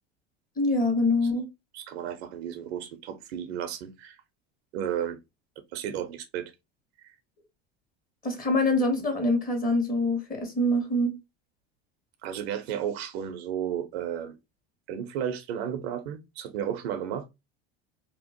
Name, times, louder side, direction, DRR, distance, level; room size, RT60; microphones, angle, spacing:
voice 1, 0.6-1.4 8.2-11.1, left 1 dB, 25° left, 1.3 m, -25 dB
voice 2, 1.7-4.2 4.7-5.2 5.7-6.5 7.0-7.1 12.2-14.4 14.9-17.3, right 9 dB, 80° right, 0.6 m, -33 dB
2.8 x 2.0 x 2.8 m
hypercardioid pair, 85°, 31 cm